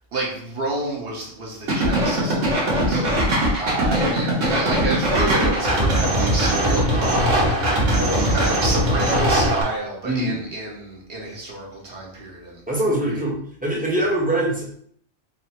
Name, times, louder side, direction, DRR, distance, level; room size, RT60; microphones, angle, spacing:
voice 1, 0.1-3.0 3.6-12.6 13.0-13.1, right 2 dB, 55° right, -3 dB, 1.2 m, -29 dB
sound 1, 1.7-9.6, right 1 dB, 85° right, 1.5 m, -20 dB
voice 2, 10.0-10.4 12.7-14.7, right 1 dB, 10° right, -4 dB, 0.8 m, -23 dB
3.8 x 2.1 x 4.2 m, 0.64 s
omnidirectional pair, 1.2 m